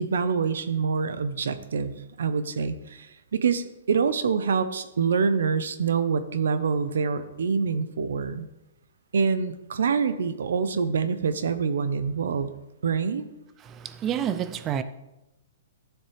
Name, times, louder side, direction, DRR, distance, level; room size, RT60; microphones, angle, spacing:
voice 1, 0.0-8.5 9.1-12.5 12.8-13.2, right 5 dB, 75° right, 0.8 m, -26 dB
voice 2, 13.6-14.8, right 9 dB, 15° right, 0.4 m, -29 dB
15.0 x 7.3 x 3.4 m
hypercardioid pair, 170°, 0 cm